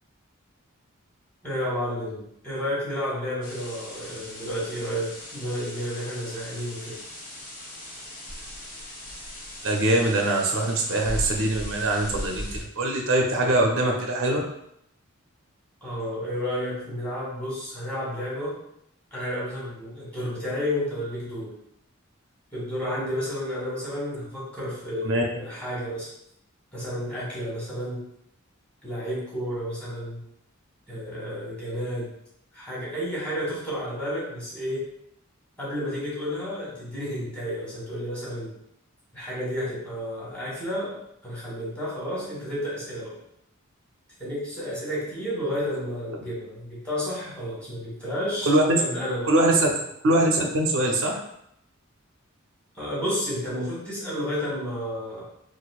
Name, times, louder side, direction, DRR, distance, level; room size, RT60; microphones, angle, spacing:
voice 1, 1.4-7.0 15.8-18.6 19.1-21.5 22.5-26.1 26.7-28.0 28.8-30.2 30.9-32.1 32.5-34.9 35.6-38.5 39.1-43.2 44.2-48.5 48.8-49.3 52.7-55.3, equal, 5° left, -7 dB, 1.2 m, -31 dB
sound 1, 3.4-12.6, left 1 dB, 40° left, 0.9 m, -38 dB
voice 2, 9.6-14.4 25.0-25.2 48.5-48.8 49.3-49.7 50.0-51.2, right 1 dB, 65° right, 1 dB, 0.5 m, -22 dB
4.1 x 2.5 x 2.3 m, 0.76 s
head